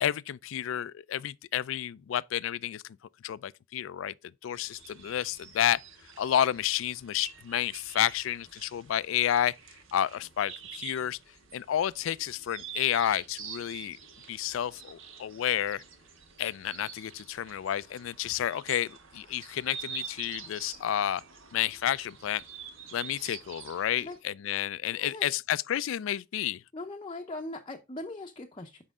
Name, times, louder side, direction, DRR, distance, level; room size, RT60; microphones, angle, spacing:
voice 1, 0.0-2.8 3.2-4.1 4.4-5.8 6.2-9.6 9.9-11.2 11.5-14.0 14.3-15.8 16.4-21.2 21.5-22.4 22.9-26.6, left 10 dB, 65° left, 0.3 m, -30 dB
sound 1, 4.5-24.2, right 7 dB, 70° right, 1.3 m, -47 dB
voice 2, 24.9-25.3 26.7-28.8, left 2 dB, 25° left, 0.6 m, -40 dB
7.3 x 5.4 x 3.6 m
head